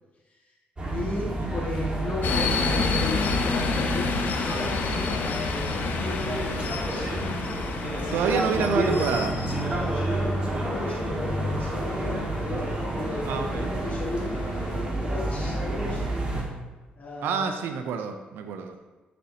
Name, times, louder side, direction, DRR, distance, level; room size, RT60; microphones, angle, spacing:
voice 1, 0.8-7.1 7.8-8.6 9.7-16.0 17.0-17.6 18.7-18.8, left 2 dB, 45° left, -8 dB, 1.9 m, -36 dB
sound 1, 0.8-16.4, right 1 dB, 30° right, 1.7 m, -30 dB
sound 2, 2.2-14.8, left 4 dB, 65° left, 0.8 m, -30 dB
voice 2, 8.1-9.3 13.3-13.7 17.2-18.8, right 6 dB, 85° right, 6 dB, 0.5 m, -28 dB
11.0 x 4.3 x 2.8 m, 1.2 s
cardioid pair, 70°, 4 cm